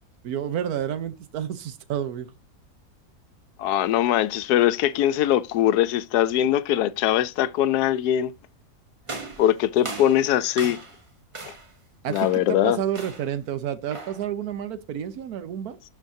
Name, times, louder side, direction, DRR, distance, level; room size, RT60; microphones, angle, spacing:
voice 1, 0.2-2.3 9.8-10.0 12.0-15.8, right 10 dB, 75° right, 1.3 m, -30 dB
voice 2, 3.6-8.3 9.4-10.8 11.5-11.6 12.1-12.8, left 12 dB, 85° left, 1.1 m, -22 dB
sound 1, 9.1-11.0 11.3-11.8 12.1-12.5 12.9-13.4 13.9-14.3, right 3 dB, 25° right, 0.9 m, -38 dB
12.0 x 4.5 x 2.7 m
omnidirectional pair, 1.6 m